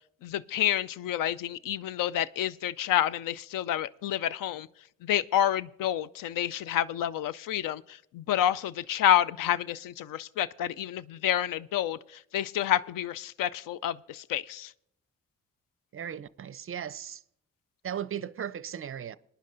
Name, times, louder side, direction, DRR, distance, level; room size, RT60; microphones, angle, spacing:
voice 1, 0.2-4.7 5.0-7.8 8.1-12.0 12.3-14.7, left 11 dB, 65° left, 0.5 m, -28 dB
voice 2, 15.9-17.2 17.8-19.2, right 9 dB, 35° right, 0.5 m, -37 dB
24.0 x 10.0 x 2.6 m
hypercardioid pair, 40°, 36 cm